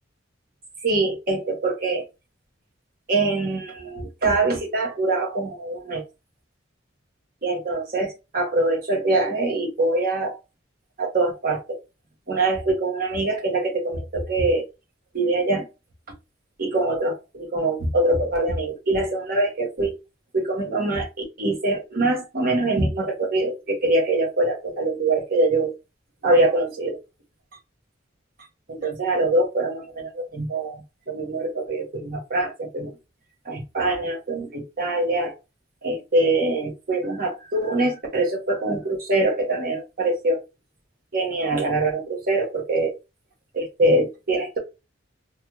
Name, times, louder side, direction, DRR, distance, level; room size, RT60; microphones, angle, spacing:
voice 1, 0.8-2.0 3.1-6.0 7.4-10.4 11.0-11.8 12.3-14.7 15.1-15.6 16.6-19.9 20.3-21.1 21.4-25.7 26.2-27.0 28.7-30.8 31.1-32.9 33.4-35.3 35.8-40.4 41.1-42.9 43.5-44.6, right 2 dB, 50° right, 1.2 m, -23 dB
3.3 x 2.3 x 3.0 m
head